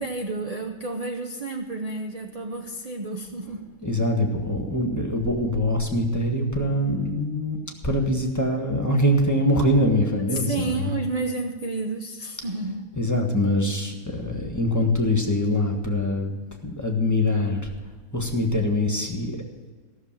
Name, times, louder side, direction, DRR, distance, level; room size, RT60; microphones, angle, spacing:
voice 1, 0.0-3.7 10.3-12.9, right 3 dB, 40° right, 3 dB, 0.5 m, -31 dB
voice 2, 3.8-7.6 7.8-10.9 13.0-16.3 16.6-17.6 18.1-19.3, left 1 dB, 10° left, 2 dB, 1.4 m, -23 dB
15.0 x 6.7 x 7.4 m, 1.4 s
omnidirectional pair, 1.7 m